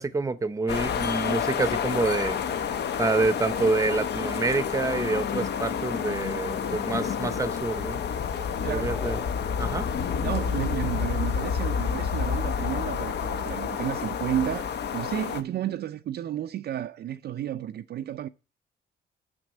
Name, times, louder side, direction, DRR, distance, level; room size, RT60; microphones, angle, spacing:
voice 1, 0.0-2.4 3.0-8.0 8.7-9.2 9.6-9.9, right 3 dB, 15° right, 0.7 m, -27 dB
sound 1, 0.7-15.4, left 7 dB, 60° left, 0.8 m, -29 dB
sound 2, 7.6-11.3 13.3-13.9, left 2 dB, 15° left, 1.4 m, -44 dB
voice 2, 8.6-8.9 10.2-18.3, right 11 dB, 55° right, 0.4 m, -32 dB
6.8 x 6.1 x 6.4 m
cardioid pair, 90°, 20 cm